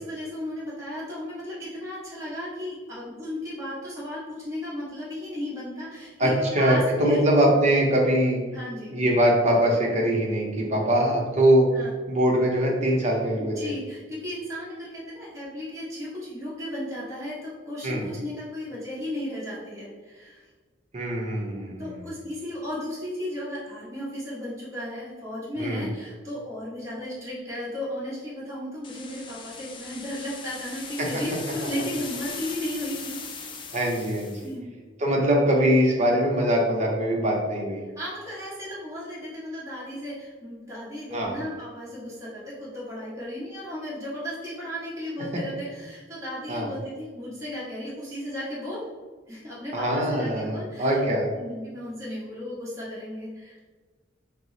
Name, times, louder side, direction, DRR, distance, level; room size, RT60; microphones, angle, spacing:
voice 1, 0.0-7.2 8.5-9.0 11.7-11.9 13.4-20.4 21.7-33.2 34.4-34.7 38.0-48.8 49.3-51.0 51.3-53.6, left 1 dB, 15° right, -8 dB, 1.1 m, -35 dB
voice 2, 6.2-8.4 8.9-11.7 12.1-13.7 17.8-18.1 20.9-21.9 25.6-25.9 33.7-34.3 35.0-37.8 41.1-41.3 46.5-46.7 49.7-51.3, equal, 40° right, -2 dB, 0.8 m, -22 dB
sound 1, 28.8-34.5, left 5 dB, 25° left, 0.3 m, -39 dB
4.5 x 2.0 x 3.9 m, 1.4 s
head